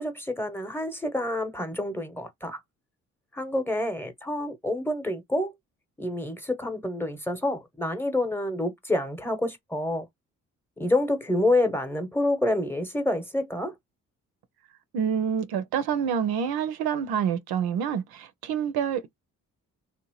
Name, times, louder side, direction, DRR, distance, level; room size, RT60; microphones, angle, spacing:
voice 1, 0.0-2.6 3.3-5.5 6.0-10.1 10.8-13.7, left 1 dB, 5° left, 0.9 m, -28 dB
voice 2, 14.9-19.1, right 7 dB, 65° right, 0.5 m, -27 dB
2.8 x 2.0 x 3.0 m
hypercardioid pair, 45°, 40 cm